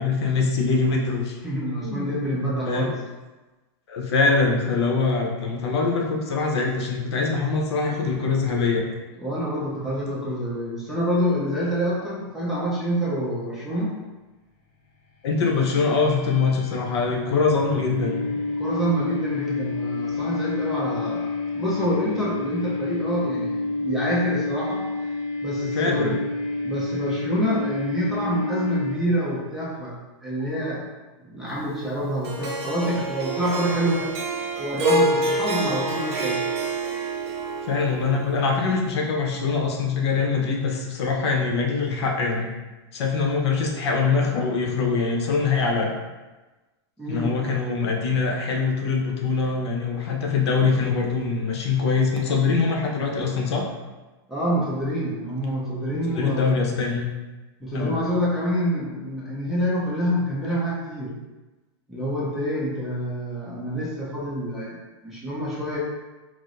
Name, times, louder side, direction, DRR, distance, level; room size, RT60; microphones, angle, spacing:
voice 1, 0.0-1.4 1.8-2.2 2.7-2.9 3.9-8.8 15.2-18.2 25.7-26.2 37.7-42.5 42.9-45.9 47.1-53.6 56.1-57.1 57.7-58.0, left 4 dB, 75° left, 0 dB, 0.7 m, -23 dB
voice 2, 1.4-3.0 9.2-13.9 18.6-24.8 25.4-26.2 26.6-30.9 31.2-34.1 34.6-36.5 47.0-47.3 54.3-56.6 57.6-61.1 61.9-65.8, equal, ahead, -8 dB, 0.5 m, -27 dB
sound 1, 15.3-29.4, left 3 dB, 35° left, 0.7 m, -29 dB
Harp, 32.2-38.6, right 2 dB, 75° right, 0.6 m, -27 dB
4.4 x 2.0 x 2.5 m, 1.2 s
supercardioid pair, 160°, 14 cm